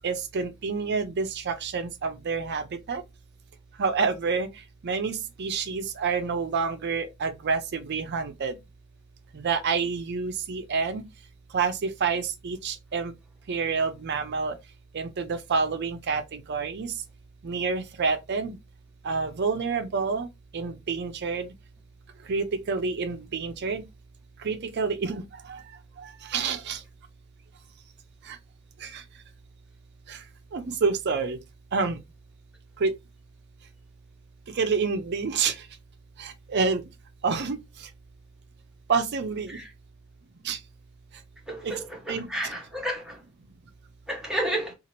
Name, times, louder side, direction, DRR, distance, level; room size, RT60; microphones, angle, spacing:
voice 1, 0.0-3.0 3.8-4.5 4.8-8.6 9.3-11.0 11.5-13.1 13.5-14.6 14.9-16.9 17.4-18.6 19.0-20.3 20.5-21.5 22.3-23.8 24.4-25.6 26.0-26.8 28.2-28.4 28.8-29.0 30.1-30.2 30.5-31.4 31.7-32.0 32.8-32.9 34.5-35.7 36.2-36.9 37.2-37.9 38.9-39.6 40.4-40.6 41.6-41.7 42.1-42.6, right 5 dB, 55° right, 0.5 m, -28 dB
voice 2, 41.5-43.2 44.1-44.7, right 1 dB, 5° right, 1.1 m, -31 dB
2.8 x 2.4 x 2.9 m
head